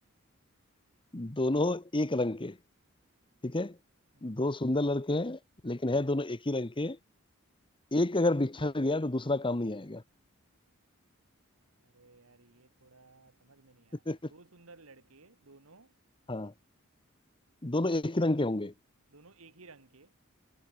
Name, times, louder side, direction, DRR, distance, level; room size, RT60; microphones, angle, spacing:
voice 1, 1.1-2.6 3.4-3.8 4.2-7.0 7.9-10.0 14.1-14.3 16.3-16.5 17.6-18.7, left 2 dB, 25° left, 1.2 m, -29 dB
voice 2, 11.8-16.0 19.1-20.1, right 3 dB, 75° right, 2.3 m, -57 dB
head